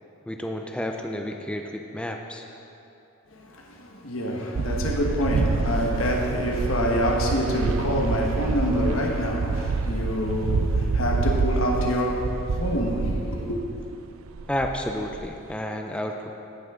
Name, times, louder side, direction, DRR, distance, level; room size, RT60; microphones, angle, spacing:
voice 1, 0.3-2.5 5.4-5.5 14.5-16.3, left 1 dB, 5° left, 0.4 m, -31 dB
voice 2, 3.3-13.6, equal, 80° left, 1.2 m, -26 dB
sound 1, 4.6-13.9 14.3-15.5, right 4 dB, 90° right, 0.4 m, -27 dB
16.0 x 5.9 x 3.7 m
head